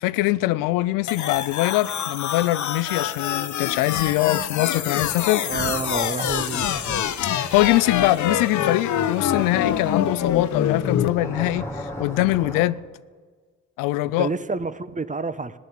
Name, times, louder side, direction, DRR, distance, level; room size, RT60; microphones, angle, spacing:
voice 1, 0.0-5.4 7.2-12.8 13.8-14.3, left 17 dB, 85° left, 0.5 m, -23 dB
sound 1, 1.1-11.1, left 9 dB, 60° left, 0.9 m, -25 dB
voice 2, 5.5-7.0 14.1-15.6, right 4 dB, 25° right, 0.9 m, -29 dB
sound 2, 10.1-12.7, left 1 dB, 10° left, 2.4 m, -35 dB
15.0 x 10.5 x 7.3 m
supercardioid pair, 55°, 32 cm